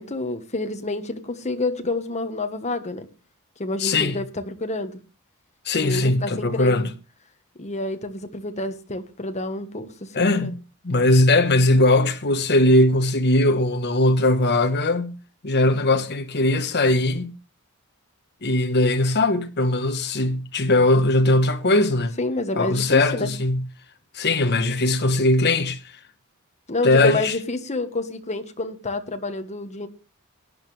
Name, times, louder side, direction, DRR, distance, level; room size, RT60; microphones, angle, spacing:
voice 1, 0.0-3.1 3.6-5.0 5.7-6.9 7.6-10.5 22.2-23.3 26.7-29.9, left 2 dB, 30° left, 1.4 m, -29 dB
voice 2, 3.8-4.2 5.6-6.9 10.1-10.6 10.8-15.1 15.4-17.3 18.4-22.2 22.5-23.7 24.1-25.8 26.8-27.4, left 2 dB, 50° left, 1.2 m, -20 dB
18.5 x 10.5 x 3.3 m
head